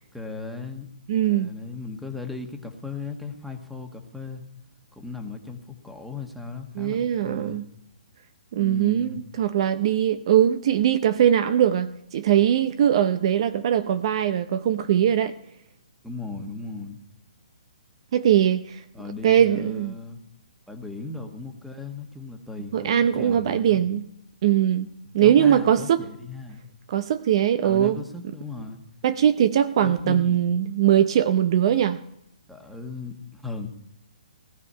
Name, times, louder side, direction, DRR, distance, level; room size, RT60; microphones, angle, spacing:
voice 1, 0.1-0.9 1.3-4.4 4.9-7.6 8.6-9.2 16.0-17.0 18.9-20.2 20.7-23.8 25.0-26.6 27.6-28.8 29.8-30.4 32.5-33.7, left 4 dB, ahead, 4 dB, 1.3 m, -36 dB
voice 2, 1.1-1.5 6.8-7.6 8.5-15.3 18.1-18.8 19.2-19.9 22.7-24.0 24.4-24.9 25.1-26.0 26.9-28.0 29.0-32.0, right 10 dB, 45° right, 13 dB, 0.6 m, -21 dB
18.0 x 12.5 x 5.6 m, 0.80 s
hypercardioid pair, 155°, 4 cm